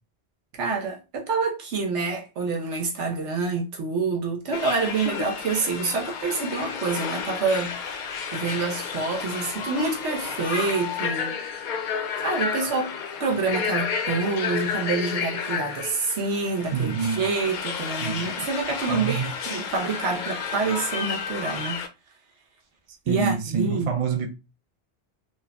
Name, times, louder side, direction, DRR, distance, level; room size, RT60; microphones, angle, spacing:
voice 1, 0.5-7.7 8.3-11.3 12.2-12.9 13.2-21.8 23.1-23.9, right 4 dB, 90° right, 1.2 m, -27 dB
sound 1, 4.5-21.9, left 6 dB, 55° left, 0.5 m, -31 dB
voice 2, 16.7-17.2 18.0-18.3 18.9-19.3 23.1-24.3, right 6 dB, 45° right, 0.4 m, -26 dB
4.3 x 2.5 x 2.2 m
omnidirectional pair, 1.2 m